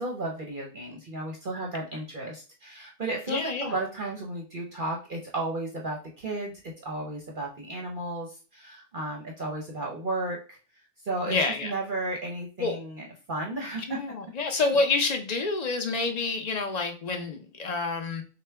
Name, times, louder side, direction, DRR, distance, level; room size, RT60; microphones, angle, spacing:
voice 1, 0.0-10.6 11.0-14.0, right 2 dB, 45° right, 0 dB, 0.8 m, -34 dB
voice 2, 3.3-3.7 11.3-11.7 12.6-12.8 13.8-18.2, left 3 dB, 45° left, 5 dB, 0.6 m, -28 dB
6.6 x 2.2 x 3.4 m, 0.36 s
omnidirectional pair, 1.4 m